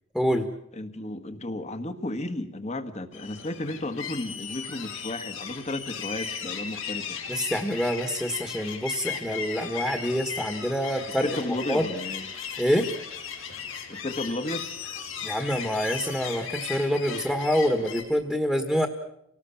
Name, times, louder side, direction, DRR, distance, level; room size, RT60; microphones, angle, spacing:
voice 1, 0.1-0.5 7.3-11.3 11.7-11.8 12.6-12.9 15.2-18.9, equal, 5° left, 6 dB, 1.6 m, -26 dB
voice 2, 0.7-7.2 11.2-12.3 13.9-14.8, left 1 dB, 35° left, 10 dB, 1.7 m, -33 dB
sound 1, 3.1-18.0, left 7 dB, 70° left, 4.6 m, -37 dB
29.5 x 19.0 x 7.1 m, 0.80 s
head